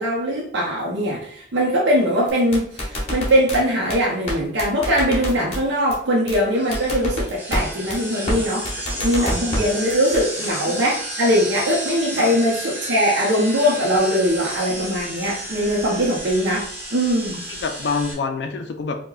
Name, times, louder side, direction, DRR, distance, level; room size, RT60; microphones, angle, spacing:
voice 1, 0.0-8.7 9.0-17.5, equal, 80° right, -3 dB, 0.6 m, -21 dB
sound 1, 2.3-3.6 3.9-4.0 4.3-4.4 4.6-5.6 5.9-6.0 6.3-6.4 6.7-7.6 7.9-8.0 8.3-8.4 8.6-9.6 9.9-10.2, left 1 dB, 35° left, 0.9 m, -26 dB
sound 2, 6.5-18.1, right 1 dB, 15° right, 0.6 m, -32 dB
voice 2, 8.7-9.3 10.7-10.8 12.2-12.3 17.5-19.0, left 4 dB, 60° left, 5 dB, 0.3 m, -27 dB
4.8 x 2.2 x 2.2 m, 0.63 s
head